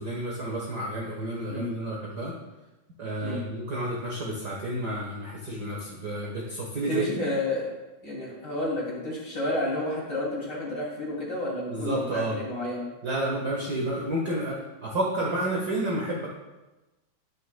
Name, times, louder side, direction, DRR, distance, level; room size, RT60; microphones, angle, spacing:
voice 1, 0.0-2.4 3.0-7.3 11.7-12.4 13.0-16.3, right 1 dB, 55° right, -3 dB, 1.1 m, -30 dB
voice 2, 6.9-7.7 8.0-12.9, left 1 dB, 35° left, -4 dB, 2.9 m, -30 dB
18.5 x 6.4 x 2.2 m, 1.1 s
omnidirectional pair, 3.6 m